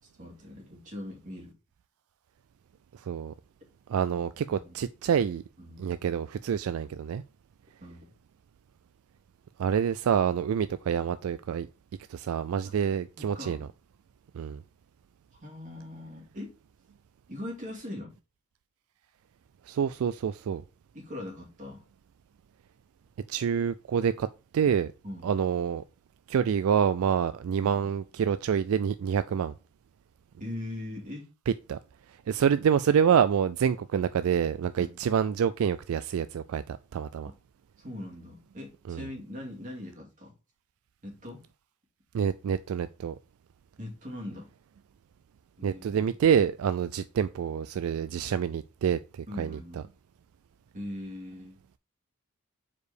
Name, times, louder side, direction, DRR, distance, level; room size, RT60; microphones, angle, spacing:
voice 1, 0.2-1.5 4.1-4.2 4.5-4.8 5.6-5.9 7.8-8.1 13.2-13.6 15.4-16.5 17.3-18.1 20.9-21.8 24.6-24.7 25.0-25.3 30.4-31.3 34.8-35.0 37.2-37.4 37.8-40.3 41.0-41.4 43.8-44.5 45.6-46.1 49.3-49.8 50.7-51.6, left 1 dB, 35° right, 2.4 m, -41 dB
voice 2, 2.9-3.3 3.9-5.4 5.8-7.2 9.6-11.7 12.1-13.6 14.3-14.6 19.7-20.6 23.3-24.9 25.2-25.8 26.3-29.5 31.5-31.8 32.3-37.3 38.9-39.0 42.1-43.2 45.6-49.6, right 7 dB, 75° right, 0.3 m, -27 dB
4.8 x 4.7 x 4.8 m
head